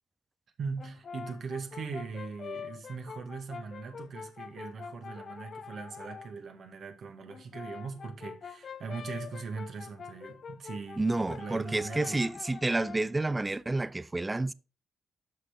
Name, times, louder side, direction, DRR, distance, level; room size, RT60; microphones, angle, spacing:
voice 1, 0.6-12.1, right 5 dB, 55° right, 1.7 m, -40 dB
Brass instrument, 0.8-6.3 7.3-13.1, left 6 dB, 50° left, 0.5 m, -45 dB
voice 2, 11.0-14.5, right 2 dB, 20° right, 0.5 m, -29 dB
7.4 x 6.4 x 3.7 m
hypercardioid pair, 40°, 0 cm